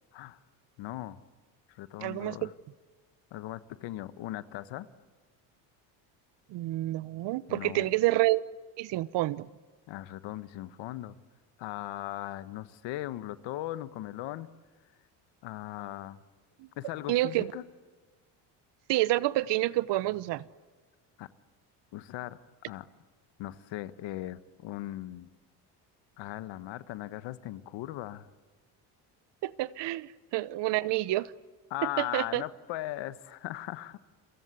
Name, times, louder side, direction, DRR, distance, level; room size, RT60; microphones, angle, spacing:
voice 1, 0.8-1.2 1.7-2.5 3.3-4.9 7.5-7.9 9.9-11.1 11.6-14.5 15.4-16.2 16.8-17.6 21.2-21.3 21.9-22.4 22.7-22.9 23.4-25.3 26.2-28.3 31.7-34.0, left 15 dB, 70° left, 1.4 m, -38 dB
voice 2, 2.0-2.5 6.5-8.4 8.8-9.5 16.6-16.7 17.1-17.5 18.9-20.4 29.4-31.3 32.0-32.4, right 17 dB, 65° right, 1.0 m, -28 dB
30.0 x 23.5 x 8.3 m
supercardioid pair, 85°, 46 cm